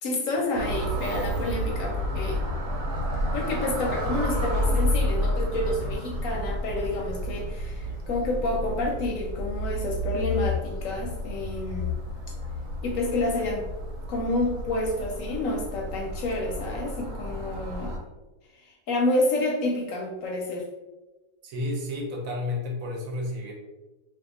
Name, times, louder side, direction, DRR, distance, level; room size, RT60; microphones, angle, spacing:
voice 1, 0.0-2.4 3.3-11.9 12.8-13.7 14.1-18.0 18.6-20.7, left 2 dB, 70° left, 0 dB, 0.8 m, -29 dB
sound 1, 0.5-18.0, equal, 90° right, 1.3 m, -30 dB
voice 2, 21.4-23.5, left 2 dB, 65° right, 0 dB, 1.0 m, -31 dB
2.7 x 2.4 x 3.6 m, 1.1 s
omnidirectional pair, 1.6 m